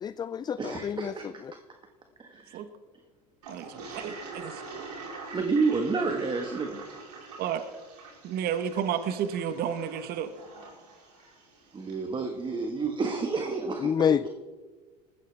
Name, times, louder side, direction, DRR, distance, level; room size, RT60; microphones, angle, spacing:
voice 1, 0.0-1.5 13.8-14.3, left 8 dB, 20° left, 15 dB, 0.4 m, -28 dB
voice 2, 0.6-1.2 2.2-2.6 5.3-6.8 11.7-13.9, right 4 dB, 25° right, 4 dB, 1.6 m, -29 dB
Toilet flush, 3.4-12.0, right 3 dB, 80° right, 5.8 m, -45 dB
voice 3, 3.5-4.6 7.4-7.6 8.2-10.3, right 8 dB, 50° right, 10 dB, 1.3 m, -31 dB
20.5 x 15.0 x 3.5 m, 1.4 s
hypercardioid pair, 90°, 20 cm